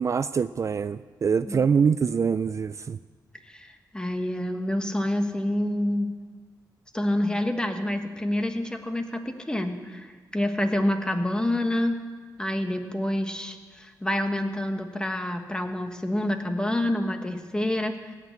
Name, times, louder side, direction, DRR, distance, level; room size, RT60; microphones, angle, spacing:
voice 1, 0.0-3.0, right 6 dB, 45° right, 14 dB, 0.3 m, -24 dB
voice 2, 3.5-6.1 6.9-12.0 12.4-18.2, left 1 dB, 10° left, 6 dB, 1.3 m, -27 dB
17.5 x 6.6 x 8.3 m, 1.4 s
cardioid pair, 80°, 7 cm